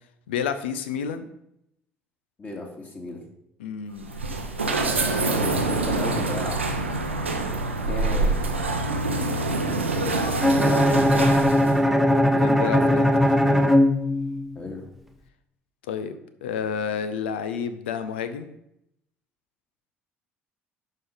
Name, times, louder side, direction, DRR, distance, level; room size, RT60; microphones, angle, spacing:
voice 1, 0.3-1.3 3.6-4.2 12.4-13.1 15.9-18.5, left 7 dB, 70° left, 11 dB, 0.7 m, -30 dB
voice 2, 2.4-3.2 5.2-6.9 7.8-8.6 10.5-11.2 14.5-14.8, left 2 dB, 25° left, 0 dB, 2.4 m, -35 dB
sound 1, 3.9-11.8, right 2 dB, 85° right, 0.7 m, -26 dB
Bowed string instrument, 10.4-14.5, left 1 dB, ahead, 1.0 m, -19 dB
11.0 x 5.5 x 3.9 m, 0.79 s
figure-of-eight pair, 55°, 6 cm